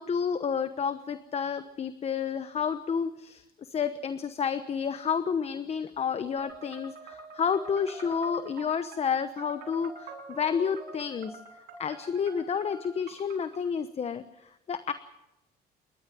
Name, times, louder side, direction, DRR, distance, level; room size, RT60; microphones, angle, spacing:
voice 1, 0.0-11.4 11.8-14.9, left 6 dB, 40° left, 11 dB, 1.0 m, -30 dB
sound 1, 6.4-13.6, right 3 dB, 75° right, 7.9 m, -46 dB
28.5 x 13.0 x 7.5 m, 0.91 s
cardioid pair, 110°, 17 cm